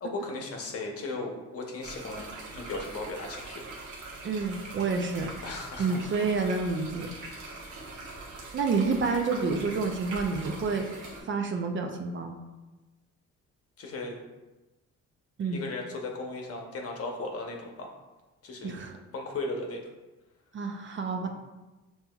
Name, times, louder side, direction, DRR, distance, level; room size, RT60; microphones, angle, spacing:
voice 1, 0.0-2.3 2.5-3.6 5.4-6.1 7.6-7.7 13.8-14.2 15.4-17.9 18.4-18.8 19.1-19.8, left 2 dB, 50° left, 1 dB, 0.8 m, -36 dB
sound 1, 1.8-11.2, right 2 dB, 75° right, 0.9 m, -42 dB
voice 2, 4.2-5.3 5.8-7.1 8.5-10.8 11.2-12.4 15.4-15.6 18.6-18.9 20.5-21.3, right 4 dB, 40° right, 4 dB, 0.5 m, -29 dB
5.4 x 2.8 x 2.3 m, 1.1 s
cardioid pair, 90°, 30 cm